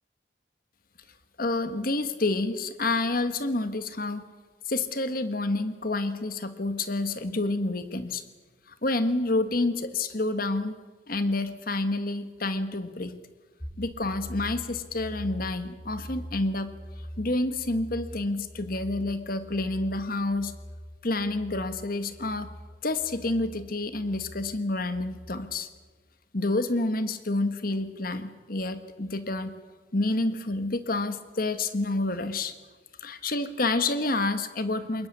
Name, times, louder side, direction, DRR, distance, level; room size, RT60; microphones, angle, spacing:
voice 1, 1.4-4.2 4.7-8.2 8.8-10.7 11.1-13.1 13.8-16.7 17.2-20.5 21.0-22.5 22.8-25.7 26.3-29.6 29.9-32.5 33.0-35.1, left 2 dB, 50° left, 10 dB, 1.6 m, -28 dB
sound 1, 13.6-25.5, equal, 25° left, 7.9 m, -43 dB
22.0 x 20.0 x 8.8 m, 1.3 s
head